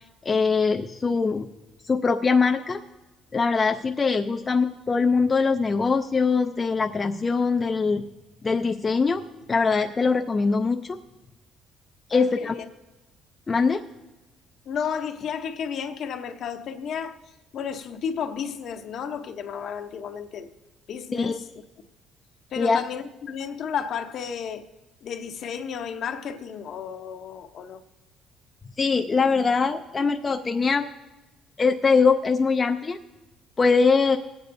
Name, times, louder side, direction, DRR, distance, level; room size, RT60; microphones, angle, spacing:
voice 1, 0.2-1.5 1.8-2.8 3.3-8.0 8.4-9.2 9.5-11.0 12.1-12.5 13.5-13.8 21.1-21.4 22.6-22.8 28.8-30.9 31.6-33.0 33.6-34.2, left 4 dB, 25° left, 0.4 m, -22 dB
voice 2, 12.1-12.7 14.7-17.2 17.5-20.5 20.9-21.5 22.5-24.7 25.0-27.8, left 7 dB, 55° left, 0.7 m, -32 dB
20.0 x 8.1 x 2.6 m
cardioid pair, 140°, 0 cm